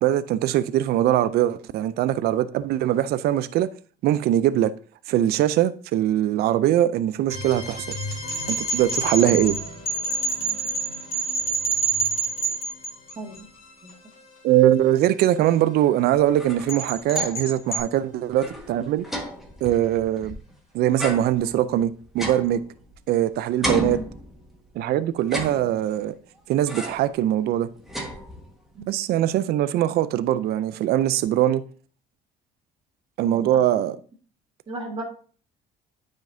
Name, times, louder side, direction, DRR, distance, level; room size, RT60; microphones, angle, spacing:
voice 1, 0.0-3.7 4.0-4.7 5.1-8.0 8.5-9.6 14.4-19.0 19.6-20.4 20.7-22.6 23.1-24.0 24.8-26.1 26.5-27.7 28.9-31.6 33.2-34.0, right 12 dB, 70° right, 0.4 m, -22 dB
sound 1, 7.3-17.0, left 2 dB, 55° left, 2.4 m, -40 dB
sound 2, 7.9-13.4 16.7-17.8, right 3 dB, 35° left, 2.4 m, -27 dB
sound 3, 16.1-17.6 17.9-18.0 18.3-20.5 21.0-23.2 23.6-24.7 25.2-26.1 26.7-27.2 27.5-28.7, equal, ahead, 1.4 m, -34 dB
voice 2, 34.7-35.0, right 1 dB, 30° right, 1.7 m, -34 dB
9.2 x 5.2 x 2.6 m
cardioid pair, 110°, 17 cm